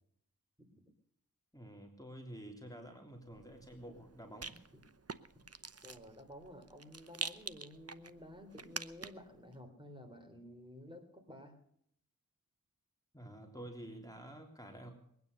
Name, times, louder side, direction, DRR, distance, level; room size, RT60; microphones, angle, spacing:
voice 1, 1.5-4.5 13.1-14.9, right 1 dB, 10° left, 2 dB, 3.3 m, -49 dB
Rattle, 3.3-9.4, right 4 dB, 45° right, 0.8 m, -47 dB
voice 2, 5.8-11.6, left 1 dB, 15° right, 3 dB, 3.5 m, -52 dB
22.0 x 9.6 x 6.7 m, 0.68 s
wide cardioid pair, 45°, 35 cm